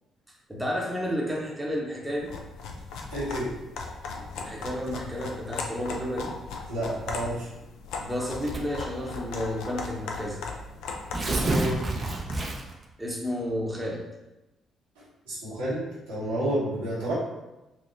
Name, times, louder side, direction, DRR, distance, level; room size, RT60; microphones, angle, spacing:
voice 1, 0.5-2.4 4.4-6.3 8.0-10.4 13.0-14.0, equal, 10° right, -2 dB, 0.9 m, -31 dB
sound 1, 2.2-12.5, left 4 dB, 70° left, 0.4 m, -38 dB
voice 2, 3.1-3.5 4.1-4.2 6.7-7.5 11.3-11.8 15.0-17.1, right 1 dB, 80° right, -9 dB, 1.3 m, -30 dB
Tearing, 8.5-8.9 9.7-9.8 10.1-10.2 10.9-12.8, right 2 dB, 40° right, 0.6 m, -29 dB
4.3 x 2.8 x 2.5 m, 0.98 s
figure-of-eight pair, 45°, 0 cm